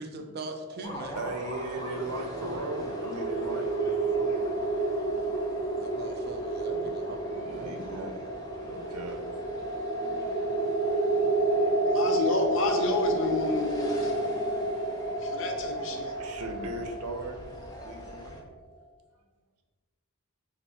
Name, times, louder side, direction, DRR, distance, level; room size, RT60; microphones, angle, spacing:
voice 1, 0.0-1.2 5.8-8.0, right 2 dB, 45° right, 5 dB, 0.4 m, -41 dB
sound 1, 0.8-18.4, equal, 15° left, 0.5 m, -44 dB
voice 2, 1.1-5.6 6.1-6.2 7.2-8.3 8.6-9.3 15.7-17.5 17.8-18.4, right 2 dB, 85° right, 4 dB, 0.6 m, -39 dB
sound 2, 1.8-18.4, right 2 dB, 85° left, 1.1 m, -30 dB
voice 3, 11.9-14.1 15.2-16.1, left 3 dB, 55° left, 4 dB, 0.6 m, -30 dB
4.3 x 2.6 x 4.2 m, 1.4 s
head